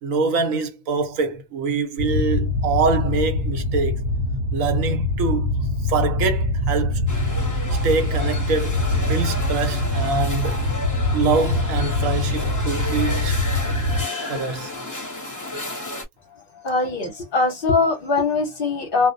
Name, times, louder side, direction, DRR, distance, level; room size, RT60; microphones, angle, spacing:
voice 1, 0.0-4.1 4.5-5.5 5.8-7.1 7.8-10.6 11.1-13.4 14.3-14.7, right 4 dB, 85° right, 1.1 m, -24 dB
sound 1, 2.0-14.0, left 2 dB, 65° right, 0.9 m, -23 dB
sound 2, 7.1-16.0, left 2 dB, 15° left, 0.8 m, -32 dB
voice 2, 16.6-19.1, left 3 dB, 50° left, 0.8 m, -21 dB
2.4 x 2.0 x 2.5 m
omnidirectional pair, 1.4 m